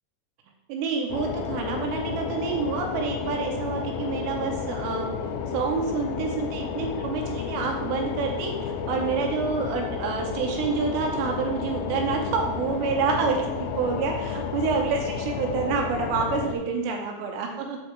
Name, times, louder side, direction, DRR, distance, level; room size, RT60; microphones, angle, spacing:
voice 1, 0.7-5.1 5.5-8.5 8.9-17.8, right 5 dB, 80° right, 2 dB, 2.7 m, -28 dB
sound 1, 1.1-16.6, left 6 dB, 85° left, 3.1 m, -32 dB
8.5 x 4.8 x 4.5 m, 1.0 s
omnidirectional pair, 5.5 m